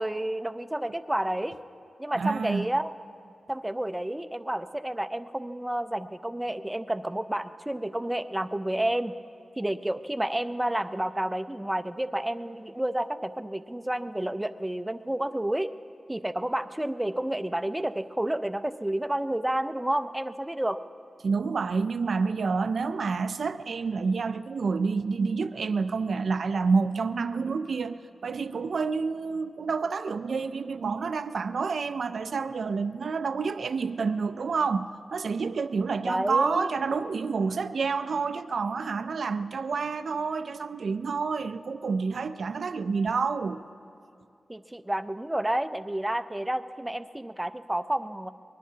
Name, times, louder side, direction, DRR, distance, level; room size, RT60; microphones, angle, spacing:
voice 1, 0.0-1.5 2.0-2.9 3.5-9.1 9.6-15.7 16.1-20.8 36.1-36.7 44.5-48.3, right 1 dB, 10° right, 10 dB, 0.5 m, -30 dB
voice 2, 2.2-2.7 21.2-43.6, right 4 dB, 75° right, 11 dB, 0.4 m, -28 dB
24.0 x 20.5 x 2.8 m, 2.5 s
wide cardioid pair, 100°, 0 cm